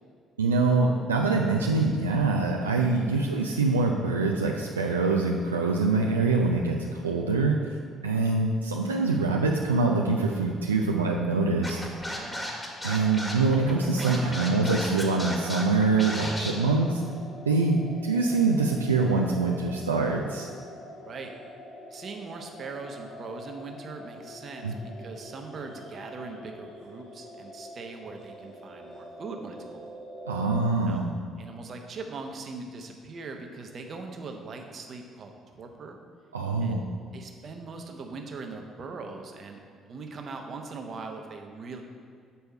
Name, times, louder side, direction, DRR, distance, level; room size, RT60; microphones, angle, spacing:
voice 1, 0.4-7.8 8.0-11.8 12.8-17.0 17.5-20.5 24.6-24.8 30.3-31.1 36.3-36.8, right 3 dB, 85° right, 0 dB, 0.3 m, -24 dB
Scratching (performance technique), 11.6-16.5, equal, 15° left, 1.6 m, -34 dB
voice 2, 12.1-12.5 21.0-21.3 21.9-29.9 30.9-31.0 31.4-36.0 36.6-39.6 39.9-41.8, right 4 dB, 45° right, 3 dB, 0.8 m, -41 dB
sound 1, 12.5-30.7, equal, 80° left, 1.8 m, -45 dB
6.9 x 4.5 x 5.5 m, 2.2 s
figure-of-eight pair, 50°, 0 cm